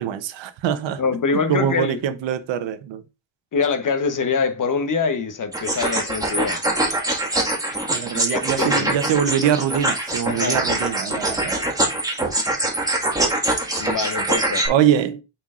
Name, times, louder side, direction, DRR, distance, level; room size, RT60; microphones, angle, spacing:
voice 1, 0.0-1.0 1.5-3.0 7.9-11.6 14.7-15.2, right 9 dB, 75° right, 0.9 m, -23 dB
voice 2, 1.0-2.0 3.5-6.6 8.1-9.0 10.3-10.6 13.8-14.7, left 5 dB, 45° left, 1.1 m, -24 dB
sound 1, 5.5-14.7, right 1 dB, 10° right, 1.8 m, -23 dB
8.3 x 4.5 x 2.5 m
cardioid pair, 85°, 45 cm